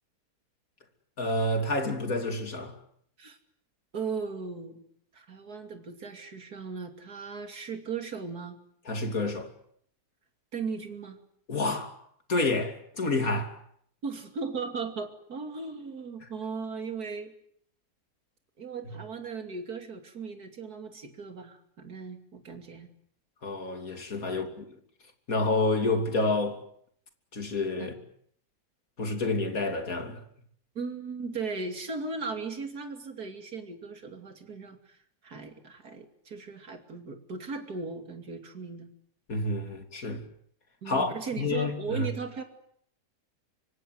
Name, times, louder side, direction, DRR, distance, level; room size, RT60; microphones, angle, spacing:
voice 1, 1.2-2.7 8.9-9.5 11.5-12.0 12.3-13.6 23.4-24.6 25.3-26.6 27.3-28.0 29.0-30.2 39.3-40.2 40.9-42.1, left 2 dB, 60° left, 3.4 m, -29 dB
voice 2, 3.9-4.8 5.1-8.6 10.5-11.2 14.0-17.3 18.6-22.9 24.5-24.6 27.8-27.9 30.7-35.0 35.2-38.9 40.8-42.4, right 4 dB, 70° right, 3.3 m, -37 dB
25.5 x 24.5 x 7.9 m
omnidirectional pair, 1.7 m